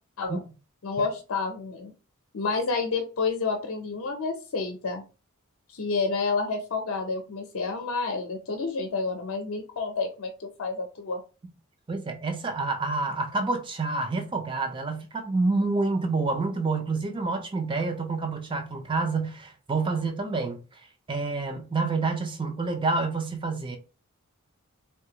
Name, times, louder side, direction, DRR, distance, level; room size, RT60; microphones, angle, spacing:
voice 1, 0.8-1.9 2.3-5.0 5.7-11.2, left 4 dB, 70° left, 0.6 m, -29 dB
voice 2, 11.9-20.6 21.1-23.8, right 3 dB, 20° right, 0.4 m, -28 dB
3.3 x 2.3 x 2.8 m
head